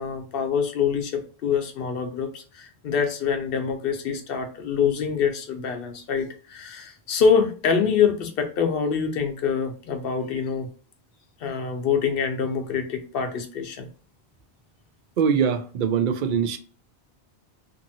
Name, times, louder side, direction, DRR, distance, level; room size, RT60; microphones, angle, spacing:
voice 1, 0.0-10.7 11.4-13.9, left 6 dB, 65° left, 0.8 m, -25 dB
voice 2, 15.2-16.6, right 7 dB, 60° right, 0.6 m, -22 dB
2.7 x 2.5 x 2.7 m
omnidirectional pair, 1.1 m